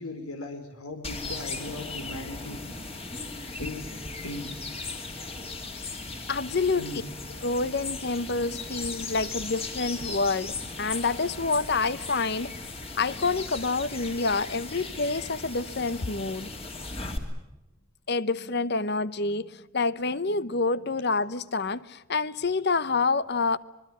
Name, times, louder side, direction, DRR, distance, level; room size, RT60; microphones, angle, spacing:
voice 1, 0.0-2.6 3.5-4.5 6.7-7.0, left 2 dB, 90° left, 3.8 m, -38 dB
sound 1, 1.0-17.2, left 3 dB, 25° left, 2.9 m, -37 dB
voice 2, 6.3-6.9 7.4-12.6 13.0-16.5 18.1-23.6, left 3 dB, 50° left, 0.9 m, -27 dB
25.0 x 22.0 x 8.8 m
head